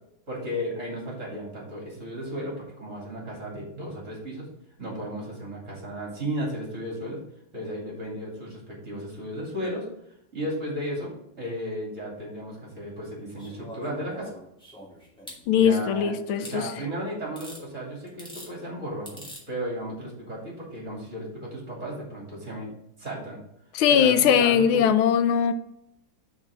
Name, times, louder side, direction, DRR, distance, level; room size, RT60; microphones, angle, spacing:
voice 1, 0.3-4.5 4.8-7.2 7.5-9.9 10.3-14.3 15.5-22.7 23.0-23.4 23.9-24.9, equal, 35° right, -3 dB, 3.1 m, -34 dB
sound 1, 13.4-15.4 16.4-16.6 17.4-17.6 18.1-18.5 19.1-19.4 20.7-20.8, equal, ahead, 2.3 m, -43 dB
voice 2, 15.5-16.6 23.7-25.5, left 8 dB, 85° left, 11 dB, 1.5 m, -20 dB
6.1 x 4.8 x 6.5 m, 0.77 s
omnidirectional pair, 2.2 m